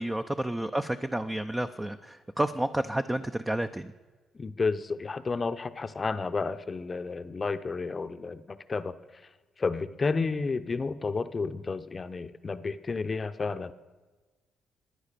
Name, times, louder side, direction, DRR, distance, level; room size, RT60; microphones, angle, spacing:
voice 1, 0.0-3.9, right 1 dB, 10° right, 8 dB, 0.6 m, -30 dB
voice 2, 4.3-9.2 9.6-13.7, left 4 dB, 30° left, 11 dB, 0.7 m, -31 dB
15.5 x 9.8 x 6.7 m, 1.3 s
cardioid pair, 90°, 0 cm